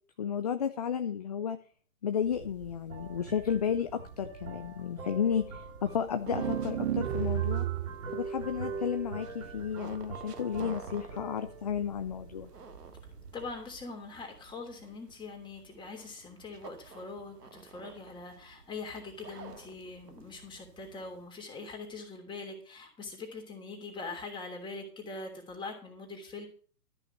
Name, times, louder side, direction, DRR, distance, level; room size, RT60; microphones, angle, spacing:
voice 1, 0.2-1.6 2.0-7.7 8.1-12.5, left 8 dB, 25° left, 9 dB, 0.4 m, -32 dB
sound 1, 2.2-13.8, right 4 dB, 65° right, 3.3 m, -43 dB
sound 2, 6.0-21.3, right 5 dB, 80° right, 2.0 m, -52 dB
sound 3, 6.2-8.1, right 13 dB, 45° right, 0.8 m, -31 dB
voice 2, 13.3-26.5, left 3 dB, 10° left, 2 dB, 3.1 m, -43 dB
13.5 x 5.8 x 7.3 m, 0.43 s
figure-of-eight pair, 130°, 47 cm